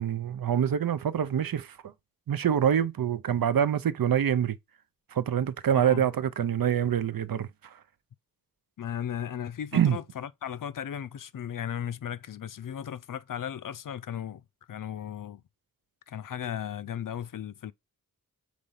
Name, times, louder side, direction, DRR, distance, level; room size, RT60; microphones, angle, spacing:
voice 1, 0.0-1.8 2.3-4.6 5.1-7.8 9.7-10.0, right 9 dB, 90° right, 0.7 m, -26 dB
voice 2, 5.7-6.1 8.8-15.4 16.1-17.7, left 9 dB, 70° left, 0.5 m, -36 dB
5.1 x 4.2 x 5.7 m
wide cardioid pair, 105°, 34 cm